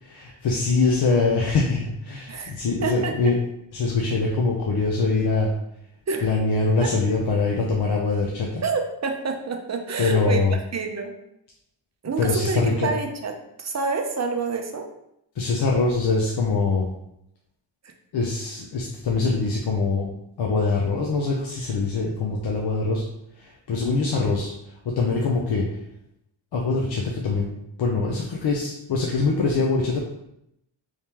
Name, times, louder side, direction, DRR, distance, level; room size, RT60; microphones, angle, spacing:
voice 1, 0.0-3.4 3.7-5.5 6.2-8.6 10.0-10.6 12.2-12.9 15.4-16.9 18.1-20.1 20.4-23.0 23.4-25.7 26.5-27.5 27.8-30.0, left 3 dB, 55° left, -1 dB, 0.6 m, -23 dB
voice 2, 2.8-3.1 6.1-6.3 6.8-6.9 8.6-10.5 10.7-11.1 12.0-13.3 13.6-14.9 17.8-17.9, right 4 dB, 35° right, 4 dB, 0.5 m, -27 dB
3.4 x 3.2 x 2.8 m, 0.79 s
wide cardioid pair, 100°, 47 cm